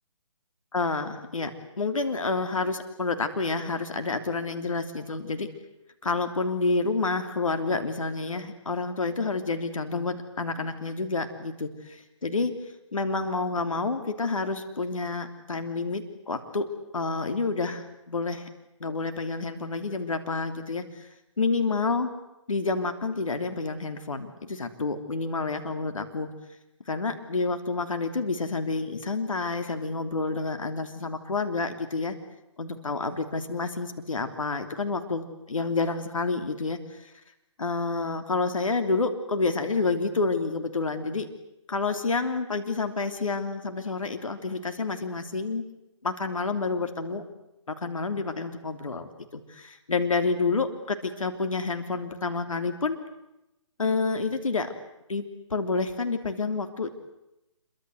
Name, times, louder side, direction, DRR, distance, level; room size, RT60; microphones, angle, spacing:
voice 1, 0.7-1.5 1.8-5.5 6.0-12.5 12.9-16.7 16.9-18.5 18.8-21.1 21.4-22.1 22.5-26.3 26.9-32.1 32.6-37.1 37.6-41.3 41.7-45.6 46.0-47.2 47.8-53.0 53.8-54.7 55.1-55.2 55.5-56.9, left 3 dB, 80° left, 7 dB, 3.2 m, -29 dB
27.5 x 24.0 x 7.9 m, 0.90 s
figure-of-eight pair, 150°, 17 cm